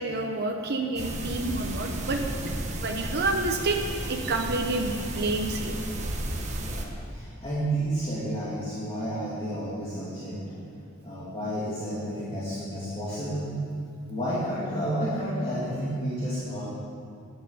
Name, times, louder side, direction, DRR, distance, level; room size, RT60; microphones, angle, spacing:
voice 1, 0.0-2.2 2.8-3.8 4.1-5.8, right 2 dB, 50° right, 3 dB, 0.8 m, -28 dB
sound 1, 1.0-6.9, right 1 dB, 35° right, 1.2 m, -33 dB
voice 2, 6.5-10.6 11.0-13.5 14.1-16.7, right 1 dB, 25° left, -10 dB, 2.4 m, -31 dB
11.0 x 8.9 x 6.9 m, 2.5 s
head